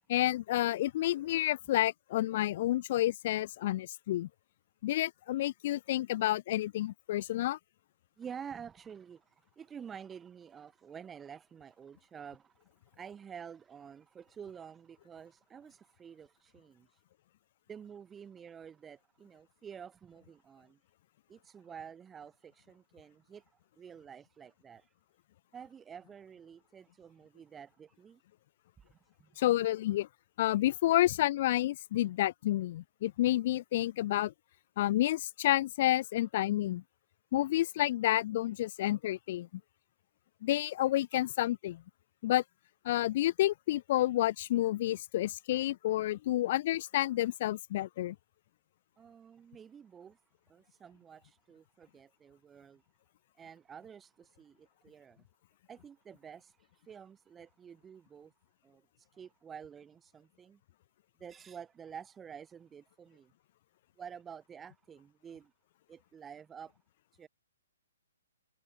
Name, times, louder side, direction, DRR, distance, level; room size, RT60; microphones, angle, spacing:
voice 1, 0.1-4.3 4.8-7.6 29.4-30.1 30.4-34.3 34.8-36.8 37.3-39.5 40.4-41.8 42.2-42.4 42.8-48.2, left 14 dB, 40° left, 0.6 m, -30 dB
voice 2, 8.2-12.6 12.9-17.0 17.7-20.8 21.3-24.9 25.5-28.2 28.8-29.3 49.0-50.2 50.5-52.8 53.3-55.2 55.7-58.3 58.6-60.6 61.2-63.3 64.0-65.5 65.9-66.8 67.1-67.3, right 7 dB, 10° right, 2.5 m, -50 dB
hypercardioid pair, 155°, 0 cm